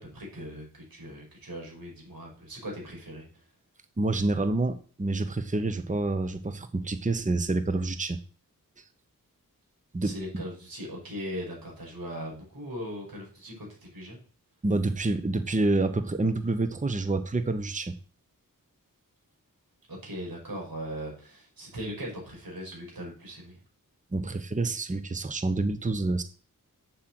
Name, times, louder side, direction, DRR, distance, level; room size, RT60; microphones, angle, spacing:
voice 1, 0.0-3.3 10.0-14.2 19.9-23.6, equal, 90° right, -1 dB, 5.7 m, -39 dB
voice 2, 4.0-8.2 8.8-8.9 9.9-10.1 14.6-17.9 24.1-26.2, right 2 dB, 20° right, 10 dB, 0.9 m, -28 dB
8.1 x 7.9 x 7.8 m, 0.40 s
wide cardioid pair, 80°, 34 cm